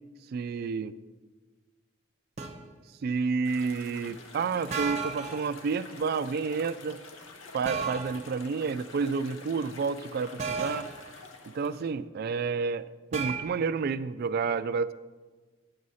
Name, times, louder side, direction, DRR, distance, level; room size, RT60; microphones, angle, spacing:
voice 1, 0.3-0.9 3.0-7.0 7.5-10.9 11.5-12.8 13.1-14.9, right 5 dB, 50° right, 15 dB, 0.3 m, -30 dB
sound 1, 2.4-2.6 4.7-5.5 7.6-8.2 10.4-11.0 13.1-13.4, right 5 dB, 35° right, 0.7 m, -33 dB
sound 2, 3.4-11.9, left 3 dB, 75° left, 0.8 m, -48 dB
8.7 x 4.1 x 6.3 m, 1.3 s
head